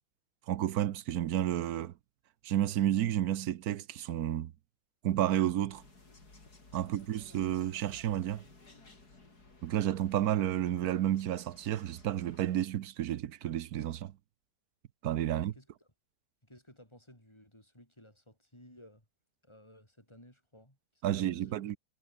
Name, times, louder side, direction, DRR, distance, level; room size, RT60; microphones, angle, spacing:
voice 1, 0.5-1.9 2.4-4.5 5.0-5.8 6.7-8.4 9.6-14.1 15.0-15.5 21.0-21.8, right 12 dB, 75° right, 1.2 m, -31 dB
sound 1, 5.7-12.7, left 3 dB, 75° left, 5.3 m, -57 dB
voice 2, 15.3-15.9 16.4-19.1 19.4-21.7, left 1 dB, 15° left, 8.1 m, -57 dB
omnidirectional pair, 1.7 m